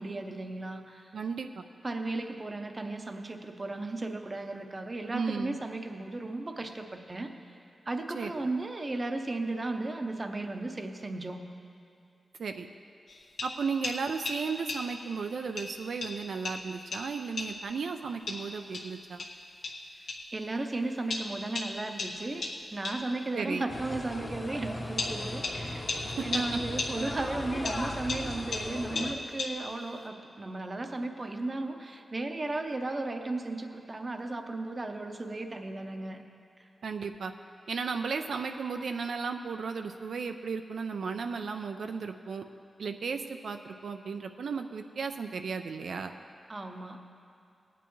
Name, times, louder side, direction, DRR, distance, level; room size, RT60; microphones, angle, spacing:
voice 1, 0.0-1.1 1.8-7.3 7.9-11.5 20.3-22.4 22.7-36.2 36.6-36.7 46.5-47.0, right 2 dB, 25° right, 5 dB, 0.7 m, -35 dB
voice 2, 1.1-1.7 5.1-5.6 8.1-8.5 12.4-12.7 13.4-19.3 23.3-23.7 26.0-26.6 36.8-37.3 37.7-42.4 42.8-46.1, right 5 dB, 70° right, 6 dB, 0.4 m, -35 dB
sound 1, 13.1-15.1 15.6-17.8 18.3-20.4 21.1-23.2 24.1-24.2 25.0-27.3 27.6-29.9, left 3 dB, 75° left, 1.0 m, -37 dB
sound 2, 23.7-29.1, left 1 dB, 20° left, 0.8 m, -38 dB
18.5 x 9.2 x 3.1 m, 2.5 s
wide cardioid pair, 165°, 0 cm